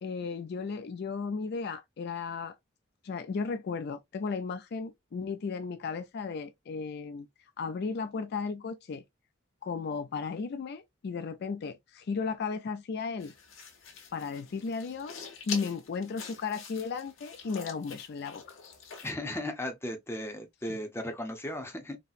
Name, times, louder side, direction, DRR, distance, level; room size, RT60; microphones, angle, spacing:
voice 1, 0.0-2.6 3.0-7.3 7.6-9.0 9.6-13.3 14.1-18.6, left 5 dB, 55° left, 0.4 m, -35 dB
sound 1, 13.2-19.1, left 6 dB, 75° left, 1.1 m, -45 dB
voice 2, 19.0-22.0, left 1 dB, 15° left, 0.6 m, -36 dB
4.0 x 2.1 x 2.4 m
head